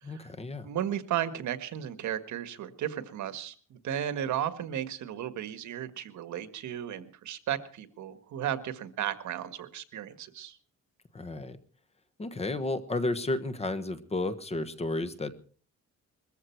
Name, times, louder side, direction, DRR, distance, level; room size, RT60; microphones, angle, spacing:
voice 1, 0.0-0.7 11.1-11.6 12.2-15.3, left 2 dB, 20° left, 11 dB, 1.3 m, -32 dB
voice 2, 0.6-10.6, right 10 dB, 75° right, 10 dB, 1.7 m, -34 dB
21.5 x 14.5 x 4.6 m, 0.42 s
cardioid pair, 155°, 30 cm